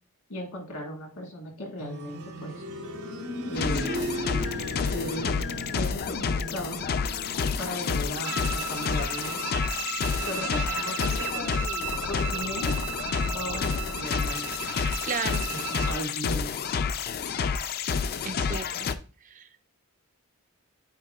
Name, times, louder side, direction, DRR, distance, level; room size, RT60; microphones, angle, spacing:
voice 1, 0.3-2.6 3.5-3.9 4.9-5.4 5.7-6.8 7.6-9.4 10.2-11.6 12.0-12.8 13.2-14.5 15.5-16.5, equal, 75° left, 1.8 m, -36 dB
sound 1, 1.8-12.5 12.9-13.0 13.9-14.0, equal, 85° right, 1.5 m, -39 dB
sound 2, 3.5-18.9, left 6 dB, 45° left, 0.4 m, -29 dB
Bowed string instrument, 8.2-16.0, right 6 dB, 70° right, 1.2 m, -35 dB
voice 2, 15.0-15.4 18.2-18.9 19.2-19.6, right 5 dB, 35° right, 0.4 m, -34 dB
9.2 x 4.5 x 2.3 m
head